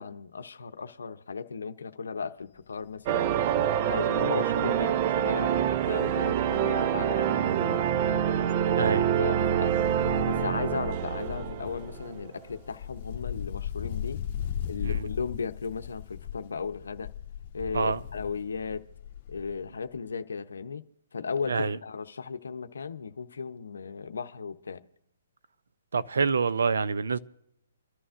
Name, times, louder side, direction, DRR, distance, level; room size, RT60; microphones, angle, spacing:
voice 1, 0.0-3.4 3.9-8.2 8.7-9.7 10.3-14.2 14.7-17.1 17.5-18.9 19.3-20.8 21.1-24.8, left 5 dB, 85° left, 0.7 m, -36 dB
Wind, 2.6-2.9 3.3-3.4 3.7-7.2 7.5-19.7 19.9-20.0, left 10 dB, 35° left, 1.3 m, -39 dB
sound 1, 3.1-12.3, right 9 dB, 30° right, 0.4 m, -26 dB
voice 2, 25.9-27.2, right 5 dB, 80° right, 0.6 m, -26 dB
29.0 x 11.0 x 2.5 m
hypercardioid pair, 155°, 0 cm